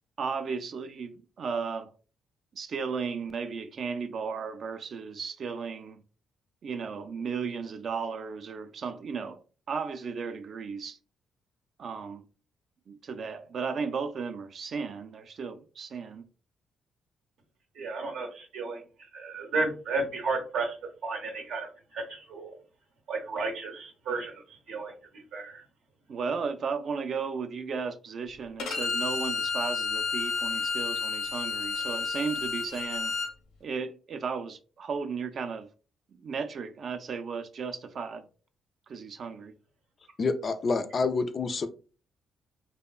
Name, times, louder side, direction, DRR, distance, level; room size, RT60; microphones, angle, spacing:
voice 1, 0.2-1.9 2.5-6.0 6.6-9.4 9.7-11.0 11.8-12.3 12.9-16.3 26.1-33.1 33.6-35.7 36.2-38.3 38.9-39.5, right 5 dB, 55° right, 0.3 m, -35 dB
voice 2, 17.8-18.8 19.1-22.6 23.1-25.6, right 3 dB, 80° right, 0.7 m, -33 dB
Bowed string instrument, 28.6-33.3, left 5 dB, 85° left, 0.6 m, -31 dB
voice 3, 40.2-41.7, left 4 dB, 45° left, 0.3 m, -27 dB
2.9 x 2.1 x 2.3 m
cardioid pair, 90°, 0 cm